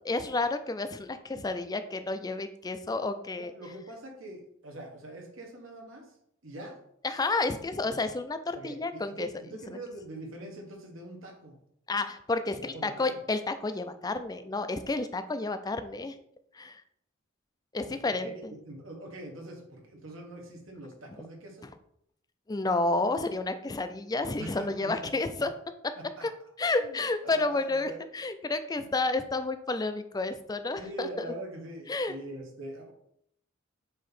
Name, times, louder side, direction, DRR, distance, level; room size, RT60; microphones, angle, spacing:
voice 1, 0.0-3.5 7.0-9.3 11.9-16.2 16.5-16.8 17.7-18.5 22.5-25.5 26.2-26.3 26.6-31.2 31.9-32.1, left 3 dB, 20° left, 9 dB, 0.4 m, -30 dB
voice 2, 3.3-6.1 6.4-6.8 8.5-11.5 12.7-13.2 17.8-21.7 24.4-25.1 25.4-25.5 26.0-26.2 26.8-27.0 27.2-28.0 28.3-28.5 30.8-32.9, right 1 dB, 75° right, 1 dB, 1.6 m, -43 dB
7.5 x 3.0 x 4.2 m, 0.70 s
head